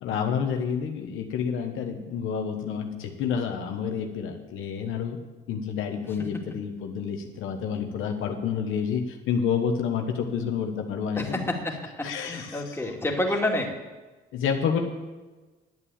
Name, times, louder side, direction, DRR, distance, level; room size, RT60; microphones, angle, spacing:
voice 1, 0.0-5.2 5.5-11.4 12.0-12.7 14.3-14.8, left 7 dB, 85° left, 4 dB, 1.3 m, -29 dB
voice 2, 11.2-13.7, left 1 dB, 10° left, -1 dB, 2.5 m, -29 dB
11.0 x 8.5 x 7.3 m, 1.2 s
cardioid pair, 90°, 20 cm